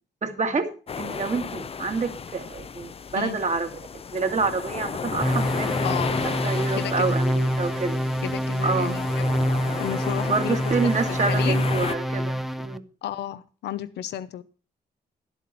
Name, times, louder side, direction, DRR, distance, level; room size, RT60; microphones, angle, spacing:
voice 1, 0.2-0.7 1.0-6.1 6.4-8.0 8.6-8.9 10.2-12.8, right 4 dB, 45° right, 5 dB, 2.0 m, -28 dB
sound 1, 0.9-11.9, left 6 dB, 35° left, 0.5 m, -33 dB
sound 2, 5.2-12.8, equal, ahead, 0.6 m, -26 dB
voice 2, 5.8-6.2 6.7-7.1 8.2-9.2 9.8-11.6 13.0-14.4, left 11 dB, 85° left, 15 dB, 0.7 m, -32 dB
11.0 x 8.2 x 5.6 m, 0.37 s
cardioid pair, 65°, 17 cm